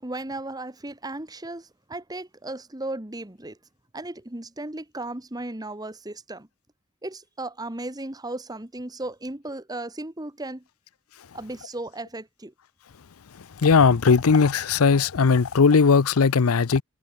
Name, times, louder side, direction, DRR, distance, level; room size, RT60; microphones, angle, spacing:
voice 1, 0.0-3.6 3.9-6.5 7.0-10.6 11.3-12.5, right 2 dB, 20° right, 1.3 m, -35 dB
voice 2, 13.6-16.8, left 5 dB, 80° left, 0.6 m, -18 dB
head